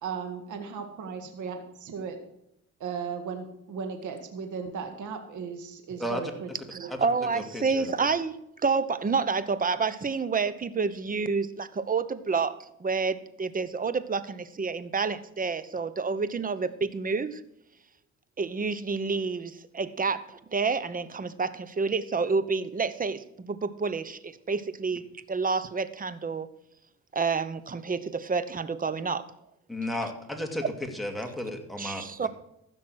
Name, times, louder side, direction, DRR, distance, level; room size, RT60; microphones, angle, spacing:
voice 1, 0.0-2.2 2.8-6.9, right 6 dB, 75° right, 1.9 m, -36 dB
voice 2, 6.0-6.3 6.9-7.0 7.3-7.9 29.7-30.6 30.9-32.3, left 1 dB, ahead, 2.3 m, -34 dB
voice 3, 6.7-8.3 8.6-17.4 18.4-25.0 25.3-26.5 27.1-29.3 31.8-32.3, right 4 dB, 30° right, 0.9 m, -29 dB
15.0 x 6.2 x 6.2 m
cardioid pair, 90°, 30 cm